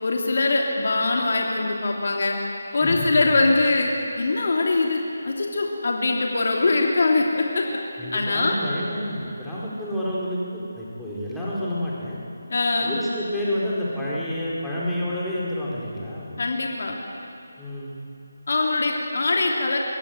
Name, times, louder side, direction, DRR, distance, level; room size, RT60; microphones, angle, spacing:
voice 1, 0.0-2.4 2.7-3.9 4.2-5.0 5.2-7.6 8.1-8.6 12.5-13.0 16.4-17.0 18.5-19.8, left 3 dB, 60° left, 0 dB, 2.9 m, -22 dB
voice 2, 2.8-3.4 8.0-12.2 12.8-16.4 17.6-17.9, left 1 dB, 5° left, -8 dB, 4.6 m, -29 dB
24.0 x 17.0 x 9.5 m, 2.8 s
figure-of-eight pair, 160°, 0 cm